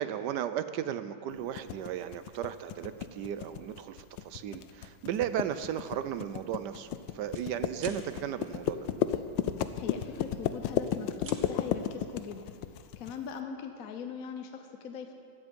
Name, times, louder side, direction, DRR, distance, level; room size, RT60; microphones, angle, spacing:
voice 1, 0.0-8.9, right 10 dB, 70° right, 12 dB, 1.0 m, -35 dB
sound 1, 1.6-13.1, left 10 dB, 75° left, 1.3 m, -33 dB
sound 2, 5.4-5.7 6.1-6.3 6.6-7.5 7.8-8.0 9.6-10.4 10.7-11.4, right 5 dB, 45° right, 1.3 m, -49 dB
voice 2, 9.7-12.5 13.0-15.1, left 6 dB, 55° left, 5 dB, 1.0 m, -41 dB
16.0 x 12.0 x 5.2 m, 2.3 s
omnidirectional pair, 2.2 m